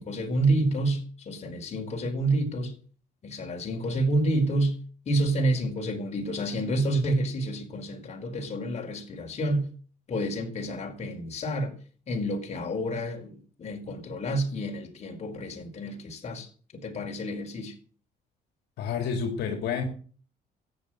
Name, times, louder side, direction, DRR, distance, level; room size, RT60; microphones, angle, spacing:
voice 1, 0.0-2.7 3.2-4.8 5.0-9.7 10.1-11.7 12.1-16.5 16.7-17.7, right 1 dB, 40° left, 4.8 m, -29 dB
voice 2, 18.8-19.8, left 6 dB, 75° left, 3.0 m, -29 dB
14.0 x 9.9 x 8.0 m
cardioid pair, 110°, 17 cm